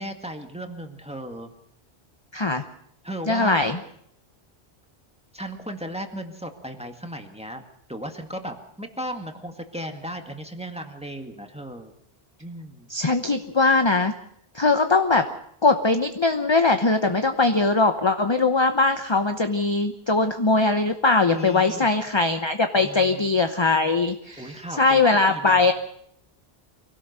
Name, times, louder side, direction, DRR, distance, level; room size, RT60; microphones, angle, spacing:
voice 1, 0.0-1.5 3.0-3.8 5.3-7.6 7.9-11.9 12.4-12.9 21.3-21.9 22.7-23.3 24.4-25.7, equal, 5° right, 5 dB, 1.9 m, -36 dB
voice 2, 2.3-2.6 3.3-3.8 12.9-14.1 14.5-15.3 15.6-24.5 24.8-25.7, left 3 dB, 25° left, 7 dB, 0.9 m, -21 dB
24.5 x 17.5 x 6.7 m, 0.72 s
omnidirectional pair, 1.1 m